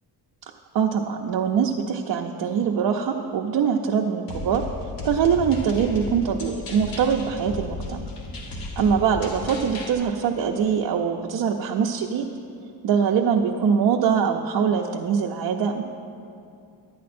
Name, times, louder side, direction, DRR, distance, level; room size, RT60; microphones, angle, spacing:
voice 1, 0.7-4.6 5.0-8.0 8.8-12.2 12.8-15.8, right 7 dB, 60° right, 0 dB, 0.6 m, -23 dB
sound 1, 4.3-9.9, left 2 dB, 55° left, 1.2 m, -34 dB
11.0 x 9.4 x 4.2 m, 2.5 s
wide cardioid pair, 160°, 42 cm